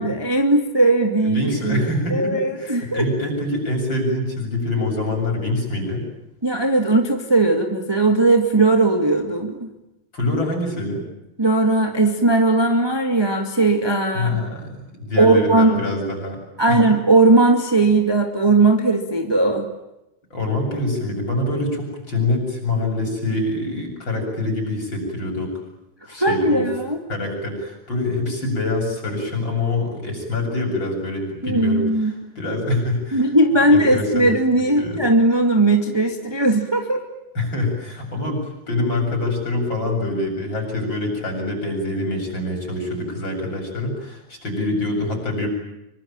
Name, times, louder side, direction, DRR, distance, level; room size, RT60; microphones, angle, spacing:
voice 1, 0.0-1.8 2.1-3.0 6.4-9.7 11.4-14.3 15.2-15.8 16.6-19.7 26.2-27.0 31.4-32.1 33.1-37.0, right 2 dB, 10° right, 4 dB, 1.2 m, -18 dB
voice 2, 1.2-6.0 10.1-11.0 14.1-16.4 16.7-16.8 20.3-25.6 26.1-26.7 27.1-33.3 33.6-35.1 37.3-45.5, left 2 dB, 30° left, 2 dB, 8.4 m, -25 dB
26.0 x 24.5 x 9.0 m, 0.90 s
omnidirectional pair, 4.4 m